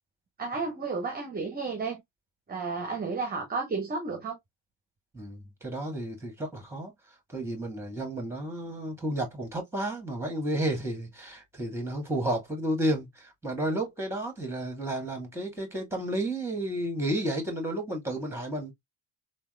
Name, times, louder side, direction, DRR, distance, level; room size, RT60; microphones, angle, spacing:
voice 1, 0.4-2.0 2.5-4.4, right 4 dB, 20° right, 0.9 m, -32 dB
voice 2, 5.1-6.9 7.3-18.7, right 1 dB, 5° right, 1.6 m, -32 dB
3.4 x 2.6 x 2.2 m
hypercardioid pair, 60°, 43 cm